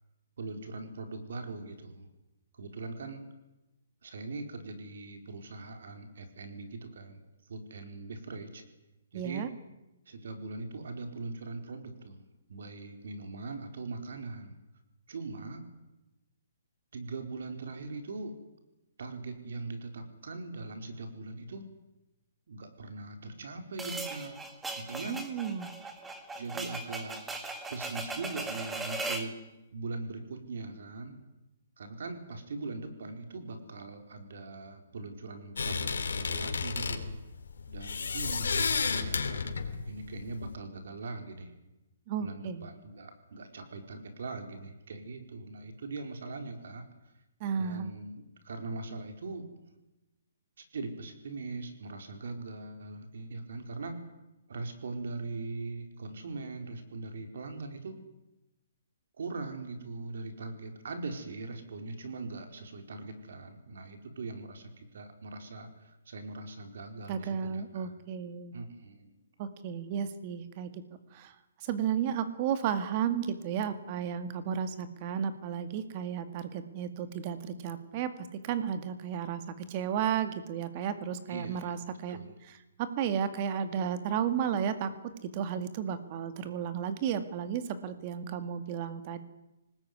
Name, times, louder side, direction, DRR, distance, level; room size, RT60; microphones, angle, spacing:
voice 1, 0.4-2.1 2.5-3.2 4.0-7.2 7.5-8.6 9.1-9.4 10.1-12.2 12.5-14.6 15.1-15.6 16.9-18.3 19.0-21.7 22.5-24.4 24.8-25.2 26.4-27.2 27.7-29.4 29.7-31.2 31.8-37.2 37.7-41.5 42.2-46.8 47.6-49.5 50.6-53.9 54.5-57.9 59.2-67.9 68.5-69.1 81.3-82.4, right 3 dB, 65° right, 6 dB, 4.7 m, -41 dB
voice 2, 9.1-9.5 25.1-25.7 42.1-42.7 47.4-47.9 67.1-68.6 69.4-70.8 71.1-71.3 71.6-79.4 79.7-82.2 82.8-89.2, right 8 dB, 30° right, 11 dB, 2.1 m, -33 dB
sound 1, 23.8-29.3, right 2 dB, 5° right, 1.8 m, -38 dB
sound 2, 35.6-40.6, left 5 dB, 90° left, 3.4 m, -32 dB
24.5 x 20.0 x 9.7 m, 0.97 s
hypercardioid pair, 165°, 0 cm